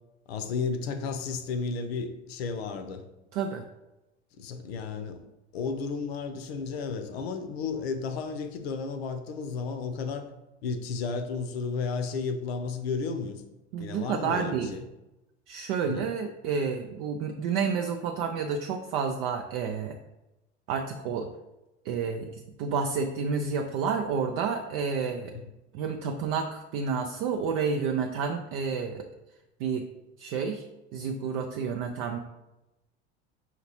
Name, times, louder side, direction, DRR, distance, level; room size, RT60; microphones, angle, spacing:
voice 1, 0.3-3.1 4.4-5.2 5.5-10.3 10.6-13.4 13.8-14.9 15.9-16.1 25.3-25.5 32.0-32.1, left 5 dB, 60° left, 7 dB, 0.6 m, -33 dB
voice 2, 3.3-3.6 13.7-14.7 15.5-20.0 20.7-21.3 21.8-22.3 22.6-25.3 25.7-29.1 29.6-29.8 30.2-30.6 30.9-32.2, right 5 dB, 50° right, 4 dB, 0.5 m, -30 dB
5.7 x 2.8 x 2.9 m, 0.95 s
figure-of-eight pair, 70°, 35 cm